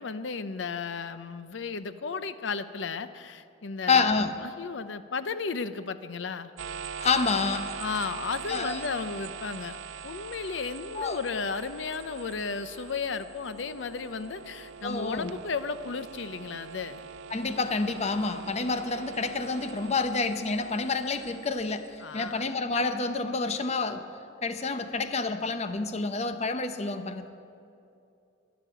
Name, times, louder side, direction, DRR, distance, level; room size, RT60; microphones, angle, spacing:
voice 1, 0.0-6.5 7.8-9.8 10.0-17.0 22.0-22.5, left 5 dB, 75° left, 13 dB, 0.6 m, -34 dB
voice 2, 3.9-4.3 7.0-7.8 8.5-8.8 11.0-11.2 14.8-15.3 17.3-24.1 24.4-27.3, left 4 dB, 35° left, 9 dB, 0.7 m, -28 dB
sound 1, 6.6-22.3, right 6 dB, 85° right, 0.6 m, -43 dB
12.0 x 10.5 x 9.0 m, 2.6 s
head